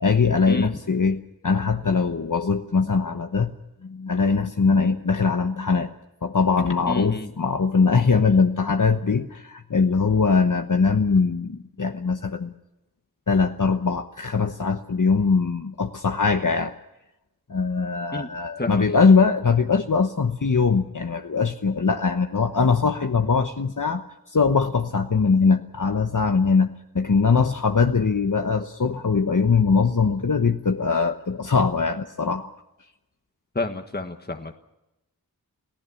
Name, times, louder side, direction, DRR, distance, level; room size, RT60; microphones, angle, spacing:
voice 1, 0.0-3.5 3.8-5.9 6.2-12.5 13.3-16.7 17.5-32.5, left 5 dB, 55° left, 5 dB, 1.1 m, -21 dB
voice 2, 6.9-7.3 18.1-18.3 18.6-18.8 33.5-34.5, left 2 dB, 25° left, 5 dB, 1.5 m, -30 dB
29.0 x 16.0 x 7.1 m, 0.93 s
wide cardioid pair, 50°, 37 cm